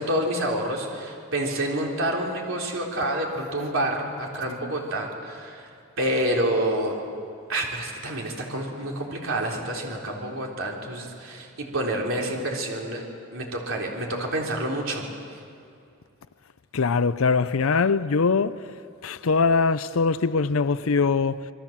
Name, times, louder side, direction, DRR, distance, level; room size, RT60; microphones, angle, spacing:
voice 1, 0.0-5.7 6.0-7.0 7.5-13.0 13.3-15.4, right 1 dB, 65° right, 3.8 m, -28 dB
voice 2, 16.7-18.6 19.0-21.4, left 4 dB, 70° left, 0.6 m, -22 dB
27.0 x 22.0 x 7.4 m
head